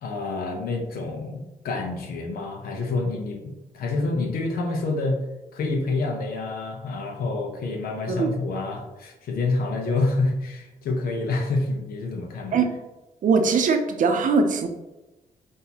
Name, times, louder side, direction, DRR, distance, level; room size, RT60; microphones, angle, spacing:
voice 1, 0.0-5.2 5.5-12.6, left 3 dB, 85° left, 3 dB, 0.9 m, -27 dB
voice 2, 13.2-14.7, right 4 dB, 60° right, 5 dB, 0.6 m, -21 dB
5.5 x 2.8 x 2.9 m, 1.0 s
cardioid pair, 90°, 15 cm